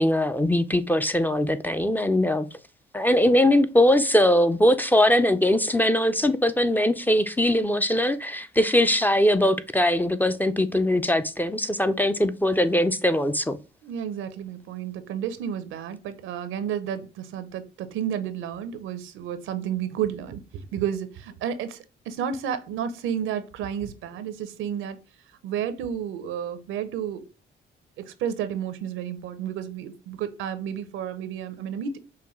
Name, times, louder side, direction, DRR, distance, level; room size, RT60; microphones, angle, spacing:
voice 1, 0.0-2.5 2.9-13.6, left 1 dB, 10° left, 0.3 m, -21 dB
voice 2, 13.8-25.0 25.4-27.2 28.0-32.0, right 9 dB, 85° right, 0.6 m, -31 dB
5.7 x 2.2 x 3.0 m
cardioid pair, 90°, 20 cm